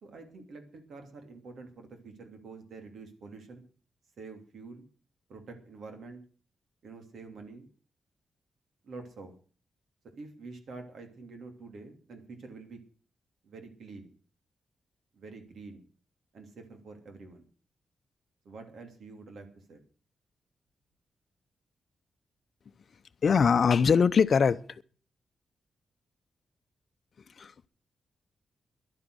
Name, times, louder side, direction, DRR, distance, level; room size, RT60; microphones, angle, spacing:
voice 1, 0.0-3.6 4.2-4.8 5.3-6.2 6.8-7.7 8.8-9.3 10.2-12.8 13.4-14.1 15.1-15.8 16.3-17.5 18.4-19.8, right 3 dB, 70° right, 2.8 m, -47 dB
voice 2, 23.2-24.8 27.4-27.7, left 6 dB, 55° left, 0.7 m, -23 dB
13.0 x 11.5 x 6.2 m
wide cardioid pair, 120°, 0 cm